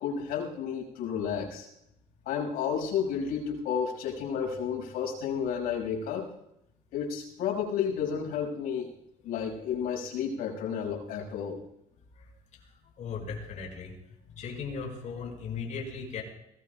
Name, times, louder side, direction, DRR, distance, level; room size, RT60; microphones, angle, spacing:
voice 1, 0.0-1.7 2.3-6.3 6.9-8.9 9.2-11.6, left 7 dB, 85° left, -1 dB, 5.9 m, -31 dB
voice 2, 13.0-13.9 14.3-16.2, left 5 dB, 55° left, 0 dB, 5.5 m, -37 dB
22.5 x 18.5 x 2.3 m, 0.80 s
cardioid pair, 145°, 15 cm